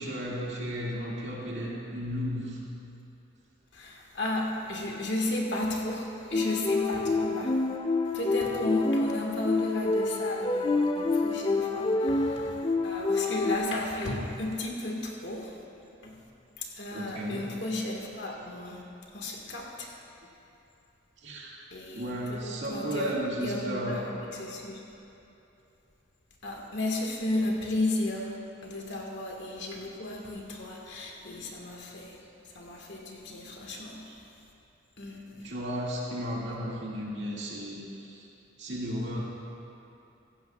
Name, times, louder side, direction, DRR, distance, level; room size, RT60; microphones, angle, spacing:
voice 1, 0.0-2.6 11.7-11.9 16.9-17.5 21.2-21.6 21.9-24.0 34.1-34.2 35.4-38.3 38.6-39.2, equal, 55° right, -5 dB, 2.2 m, -34 dB
voice 2, 3.7-7.6 8.1-15.6 16.0-16.2 16.6-18.8 19.1-19.9 21.7-23.2 23.4-25.0 26.4-28.4 28.6-34.1 35.0-35.5, left 1 dB, 55° left, -1 dB, 1.7 m, -34 dB
sound 1, 6.3-13.6, left 3 dB, 25° left, 0.4 m, -27 dB
16.5 x 14.5 x 2.4 m, 2.9 s
head